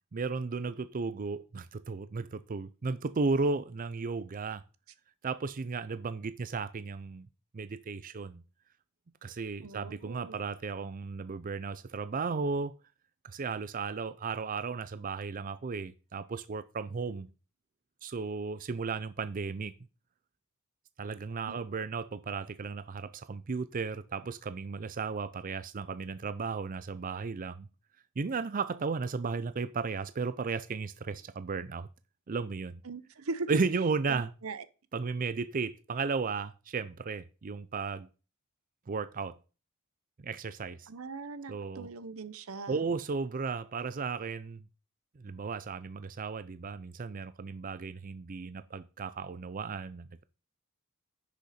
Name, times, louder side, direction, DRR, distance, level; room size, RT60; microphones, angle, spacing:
voice 1, 0.1-4.6 5.2-7.3 7.5-8.4 9.2-12.7 13.2-17.3 18.0-19.7 21.0-27.7 28.2-31.9 32.3-32.8 33.5-34.3 34.9-38.1 38.9-39.4 40.2-40.9 41.5-41.9 42.7-44.6 45.2-50.2, right 4 dB, 40° right, 0.5 m, -34 dB
voice 2, 9.6-10.4 21.5-21.6 32.8-33.5 34.1-34.6 40.9-42.8, right 3 dB, 80° right, 0.8 m, -40 dB
10.0 x 6.6 x 4.3 m
head